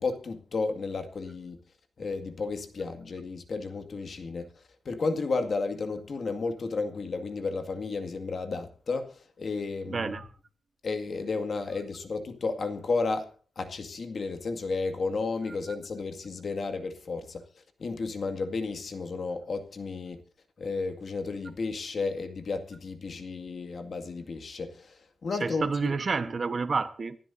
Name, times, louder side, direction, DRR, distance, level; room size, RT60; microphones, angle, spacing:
voice 1, 0.0-1.6 2.0-4.5 4.9-10.1 10.8-13.3 13.6-17.4 17.8-20.2 20.6-25.7, left 4 dB, 50° left, 2.1 m, -32 dB
voice 2, 9.9-10.3 15.7-15.8 25.4-27.2, right 4 dB, 40° right, 1.2 m, -29 dB
26.0 x 12.5 x 2.7 m
wide cardioid pair, 145°, 0 cm